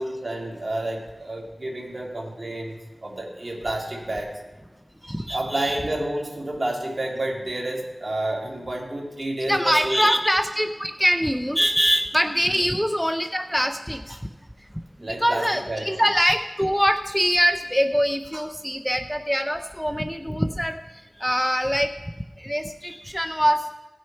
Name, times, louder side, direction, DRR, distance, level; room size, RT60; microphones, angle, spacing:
voice 1, 0.0-4.3 5.3-10.1 12.4-12.7 15.0-16.1, right 1 dB, 50° right, -1 dB, 2.3 m, -30 dB
voice 2, 5.0-5.8 9.5-14.3 15.0-21.9 22.4-23.7, equal, ahead, 8 dB, 0.5 m, -23 dB
18.0 x 6.3 x 4.5 m, 1.1 s
wide cardioid pair, 60°, 0 cm